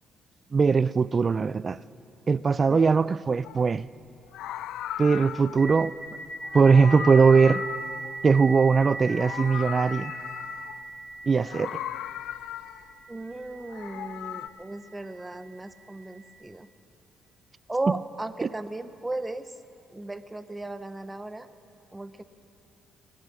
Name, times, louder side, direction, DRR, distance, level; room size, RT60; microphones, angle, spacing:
voice 1, 0.5-1.8 2.3-3.9 5.0-5.9 6.5-7.6 8.2-10.1 11.3-11.8 17.9-18.0 18.4-18.5, right 5 dB, 35° right, 0.3 m, -20 dB
voice 2, 2.7-3.0 13.1-16.7 17.7-19.5 19.9-21.5 21.9-22.2, right 2 dB, 15° right, 0.7 m, -35 dB
Meow, 3.4-3.7 4.2-5.7 6.4-8.7 9.0-10.9 11.4-13.0 13.5-14.5, left 12 dB, 85° left, 0.3 m, -37 dB
sound 1, 5.6-14.8, right 2 dB, 15° left, 3.2 m, -39 dB
22.0 x 9.9 x 6.4 m
cardioid pair, 90°, 0 cm